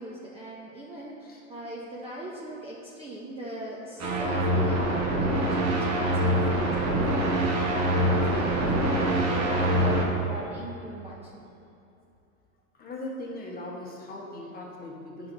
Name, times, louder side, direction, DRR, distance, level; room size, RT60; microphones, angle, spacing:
voice 1, 0.0-11.3, right 1 dB, 15° right, -5 dB, 0.8 m, -39 dB
sound 1, 4.0-10.0, right 1 dB, 40° right, 1.2 m, -24 dB
voice 2, 12.7-15.3, left 1 dB, 20° left, -3 dB, 1.3 m, -39 dB
9.3 x 5.9 x 2.7 m, 2.7 s
hypercardioid pair, 105°, 41 cm